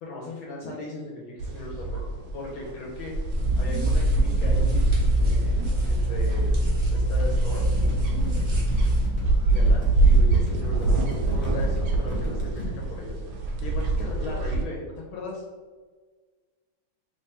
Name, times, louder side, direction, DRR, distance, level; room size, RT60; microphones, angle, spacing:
voice 1, 0.0-2.0 2.3-3.1 3.6-6.5 6.8-7.7 8.0-8.1 9.4-13.2 13.6-14.8 15.1-15.4, left 2 dB, 70° left, -3 dB, 1.4 m, -38 dB
sound 1, 1.4-14.6, right 2 dB, 80° right, 0.9 m, -25 dB
sound 2, 3.3-9.0, right 1 dB, 60° right, 0.4 m, -24 dB
sound 3, 7.6-12.7, left 2 dB, 40° left, 0.9 m, -38 dB
3.3 x 2.9 x 3.3 m, 1.4 s
omnidirectional pair, 2.4 m